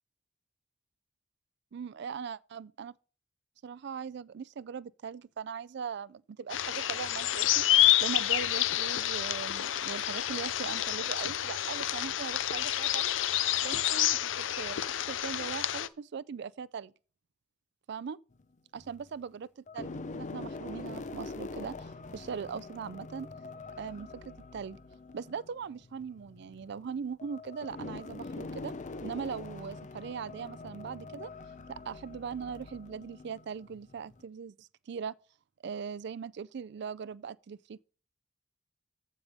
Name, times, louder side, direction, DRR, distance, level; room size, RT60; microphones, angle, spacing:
voice 1, 1.7-2.9 3.6-13.1 13.6-16.9 17.9-18.2 18.7-23.3 23.8-24.8 25.1-28.7 29.0-31.3 31.7-35.1 35.6-37.8, right 6 dB, 60° right, 0.4 m, -40 dB
sound 1, 6.5-15.9, left 13 dB, 90° left, 0.5 m, -29 dB
sound 2, 18.3-19.1 19.7-34.2, left 3 dB, 40° left, 0.6 m, -44 dB
14.0 x 5.3 x 3.5 m
head